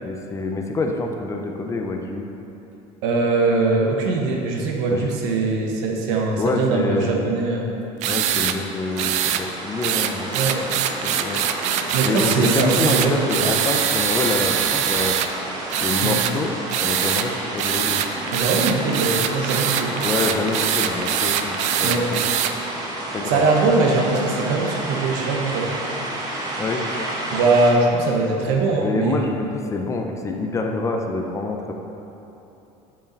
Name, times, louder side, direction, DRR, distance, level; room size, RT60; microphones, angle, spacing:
voice 1, 0.0-2.3 4.9-5.1 6.4-7.3 8.1-10.3 11.0-11.4 12.0-15.2 15.8-16.5 16.8-18.0 20.0-22.3 23.1-23.4 26.6-26.8 28.8-31.7, left 3 dB, 20° left, 3 dB, 0.6 m, -26 dB
voice 2, 3.0-7.7 10.3-10.6 11.9-13.5 16.0-16.2 18.3-19.9 21.8-22.1 23.2-25.7 27.3-29.3, right 3 dB, 80° right, 0 dB, 1.3 m, -21 dB
sound 1, 8.0-8.6 9.0-9.4 9.8-15.3 15.7-16.3 16.7-17.3 17.6-22.5, right 10 dB, 50° right, 0.4 m, -23 dB
sound 2, 8.3-27.7, right 1 dB, 25° right, 1.2 m, -31 dB
7.5 x 5.4 x 5.4 m, 3.0 s
cardioid pair, 145°, 15 cm